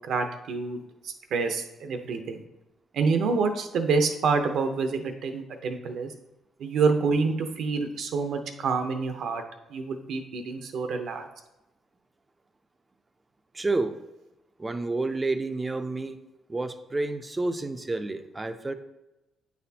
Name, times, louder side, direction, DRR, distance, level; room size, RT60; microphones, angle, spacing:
voice 1, 0.1-0.8 1.3-2.4 2.9-6.1 6.6-9.4 9.7-11.2, right 4 dB, 70° right, 6 dB, 0.7 m, -27 dB
voice 2, 13.5-13.9 14.6-16.2 16.5-18.7, right 2 dB, 20° right, 9 dB, 0.4 m, -29 dB
8.6 x 4.2 x 2.8 m, 0.98 s
cardioid pair, 90°, 0 cm